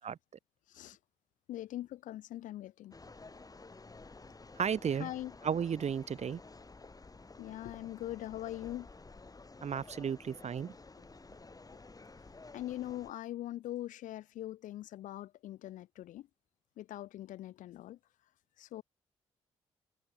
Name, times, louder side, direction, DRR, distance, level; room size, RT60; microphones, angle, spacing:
voice 1, 0.7-1.0 1.5-2.9 5.0-5.3 7.4-8.9 12.5-16.3 16.8-18.0 18.6-18.8, left 14 dB, 75° left, 1.3 m, -42 dB
sound 1, 2.9-13.1, left 3 dB, 30° left, 1.9 m, -53 dB
voice 2, 4.6-5.1 5.4-6.4 9.6-10.7, right 7 dB, 55° right, 1.7 m, -34 dB
hypercardioid pair, 45°, 13 cm